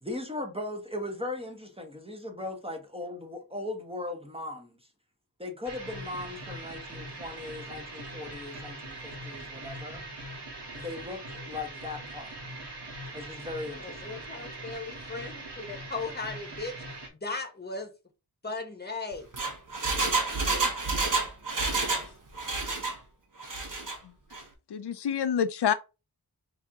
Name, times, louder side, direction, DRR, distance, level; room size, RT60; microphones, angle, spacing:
voice 1, 0.0-4.8 5.4-10.0 10.7-12.4 13.1-14.5, left 2 dB, 15° right, 1.3 m, -38 dB
sound 1, 5.6-17.1, right 2 dB, 85° right, 1.3 m, -42 dB
voice 2, 13.8-16.8 17.2-17.9 18.4-19.3, left 3 dB, 25° left, 1.2 m, -37 dB
Engine, 19.1-22.1 22.3-23.0 23.4-24.0 24.3-24.4, right 3 dB, 50° right, 1.3 m, -29 dB
voice 3, 24.7-25.7, left 8 dB, 75° left, 0.6 m, -27 dB
4.6 x 2.8 x 3.6 m
wide cardioid pair, 70°, 40 cm